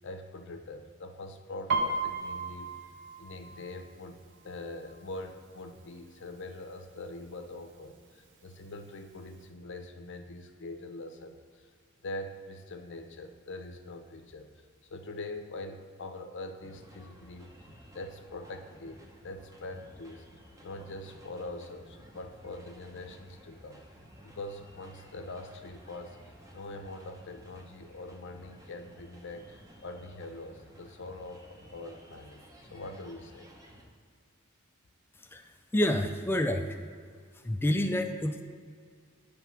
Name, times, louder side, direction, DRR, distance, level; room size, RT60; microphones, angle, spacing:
voice 1, 0.0-2.7 3.2-4.2 4.4-11.7 12.0-14.5 14.9-20.3 20.6-23.8 24.2-26.2 26.5-33.5, left 2 dB, 60° left, 6 dB, 0.6 m, -43 dB
Piano, 1.7-5.3 5.7-6.1 6.4-7.1 7.7-7.8 8.0-9.0 9.4-9.5, right 3 dB, 60° right, 0.6 m, -35 dB
sound 1, 16.6-33.8, equal, 15° right, 0.8 m, -55 dB
voice 2, 35.2-36.8 37.3-38.4, left 1 dB, 10° left, 5 dB, 0.3 m, -29 dB
9.3 x 3.4 x 5.8 m, 2.1 s
head